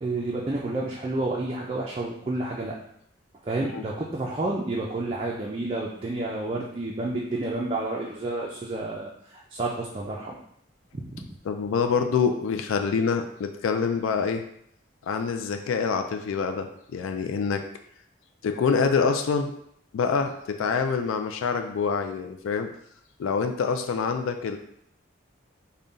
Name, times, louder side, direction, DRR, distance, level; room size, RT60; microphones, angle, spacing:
voice 1, 0.0-2.8 3.4-10.4 10.9-11.3, right 2 dB, 25° right, -3 dB, 0.4 m, -30 dB
voice 2, 11.5-14.4 15.1-17.6 18.4-19.5 19.9-22.7 23.2-24.6, left 5 dB, 85° left, 6 dB, 0.3 m, -26 dB
3.7 x 2.2 x 3.9 m, 0.70 s
head